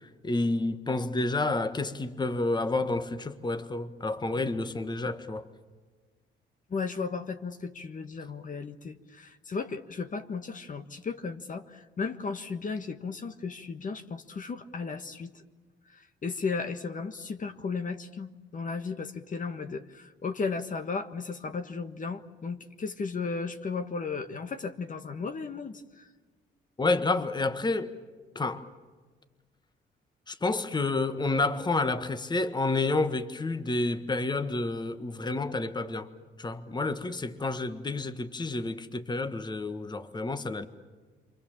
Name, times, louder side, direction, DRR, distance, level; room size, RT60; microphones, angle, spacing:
voice 1, 0.2-5.5 26.8-27.9 28.3-28.7 30.3-36.1 36.4-40.7, left 2 dB, 20° left, 1.5 m, -29 dB
voice 2, 6.7-15.4 15.8-26.1, left 4 dB, 40° left, 1.5 m, -35 dB
28.0 x 25.0 x 7.4 m
cardioid pair, 90°, 20 cm